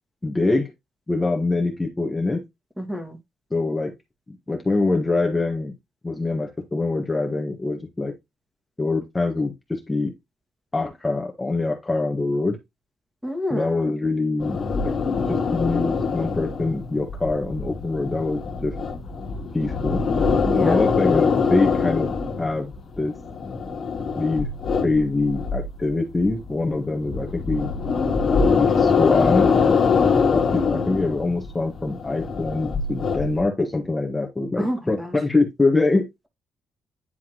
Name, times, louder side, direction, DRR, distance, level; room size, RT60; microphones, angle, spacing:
voice 1, 0.2-0.7 1.1-2.4 3.5-3.9 4.3-5.7 6.0-8.1 8.8-10.1 10.7-12.6 13.5-14.9 15.3-18.8 19.5-20.0 20.6-22.1 22.4-23.2 24.2-24.5 24.8-27.7 28.5-29.5 30.3-36.1, left 3 dB, 20° left, 1.5 m, -24 dB
voice 2, 2.8-3.2 13.2-13.9 20.4-20.8 34.6-35.1, equal, 5° right, 1.9 m, -28 dB
sound 1, 14.4-25.9 26.2-33.4, left 5 dB, 50° left, 2.0 m, -23 dB
9.9 x 3.5 x 3.0 m
cardioid pair, 90°, 0 cm